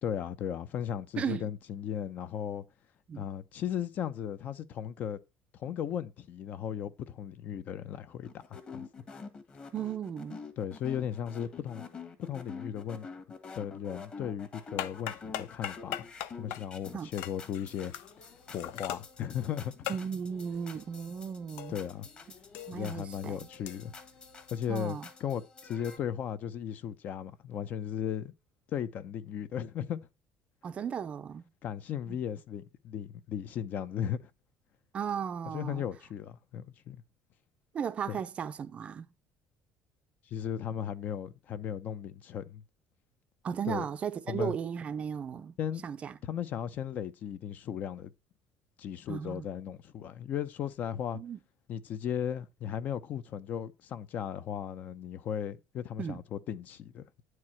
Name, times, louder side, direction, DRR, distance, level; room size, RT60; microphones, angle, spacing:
voice 1, 0.0-2.6 3.2-5.2 5.6-8.3 8.7-8.8 10.6-11.8 12.2-13.1 13.5-15.9 16.3-17.9 18.5-19.9 21.7-22.1 22.7-23.9 24.5-28.3 28.7-30.0 31.6-34.3 35.5-37.0 38.1-38.2 40.3-42.6 43.6-43.8 44.3-44.5 45.6-45.8 46.2-48.1 48.8-51.2 51.7-57.2, left 9 dB, 45° left, 0.7 m, -36 dB
voice 2, 1.2-1.5 3.1-3.2 9.7-10.4 16.9-17.1 19.9-21.8 22.7-23.5 24.7-25.1 30.6-31.5 32.1-32.2 34.9-35.8 37.7-39.1 43.4-45.6 45.8-46.1 49.1-49.4 51.1-51.4 56.0-56.2, right 7 dB, 30° right, 0.5 m, -35 dB
sound 1, 8.2-26.0, left 4 dB, 25° left, 1.5 m, -48 dB
sound 2, 14.6-22.1 22.4-24.8, left 13 dB, 85° left, 0.7 m, -42 dB
9.7 x 4.7 x 5.8 m
cardioid pair, 160°, 4 cm